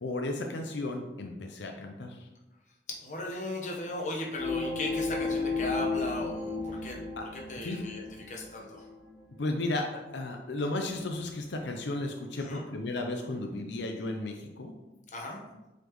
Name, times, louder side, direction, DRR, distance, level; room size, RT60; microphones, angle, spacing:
voice 1, 0.0-2.3 7.2-7.3 7.6-7.8 9.4-14.7, left 2 dB, 85° left, 3 dB, 0.6 m, -34 dB
voice 2, 2.9-7.0 7.3-8.9 12.4-12.6 15.1-15.4, left 1 dB, 45° left, -1 dB, 1.1 m, -37 dB
sound 1, 4.4-9.2 9.6-9.7, left 3 dB, 15° left, 2.3 m, -34 dB
8.0 x 4.2 x 3.1 m, 1.0 s
head